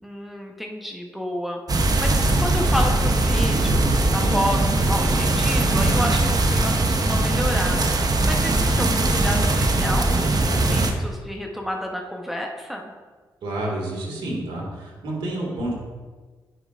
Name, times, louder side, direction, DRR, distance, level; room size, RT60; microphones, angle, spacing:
voice 1, 0.0-12.9, equal, ahead, 1 dB, 1.0 m, -30 dB
sound 1, 1.7-10.9, right 2 dB, 45° right, 0.8 m, -20 dB
voice 2, 13.4-15.7, right 1 dB, 75° right, -2 dB, 2.1 m, -29 dB
9.7 x 5.1 x 2.5 m, 1.4 s
supercardioid pair, 45°, 9 cm